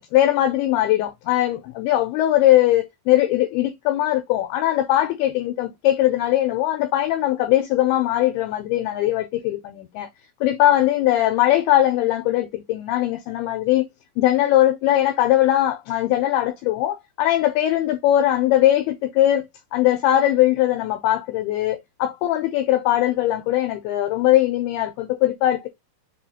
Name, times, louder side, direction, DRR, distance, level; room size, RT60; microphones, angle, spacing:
voice 1, 0.0-10.1 10.4-13.8 14.2-16.9 17.2-18.8 19.2-19.4 19.7-25.7, left 13 dB, 80° left, 2.4 m, -20 dB
6.0 x 2.3 x 2.8 m
omnidirectional pair, 4.7 m